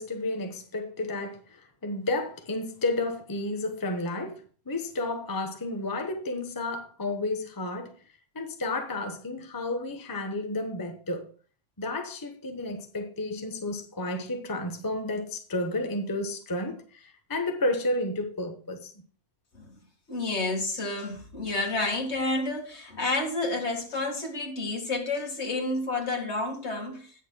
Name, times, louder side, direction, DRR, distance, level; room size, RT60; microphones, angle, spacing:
voice 1, 0.0-7.9 8.3-11.3 11.8-18.9, left 2 dB, 20° left, 0.9 m, -31 dB
voice 2, 20.1-27.1, left 2 dB, 60° left, 2.2 m, -30 dB
17.5 x 6.5 x 2.2 m
omnidirectional pair, 1.3 m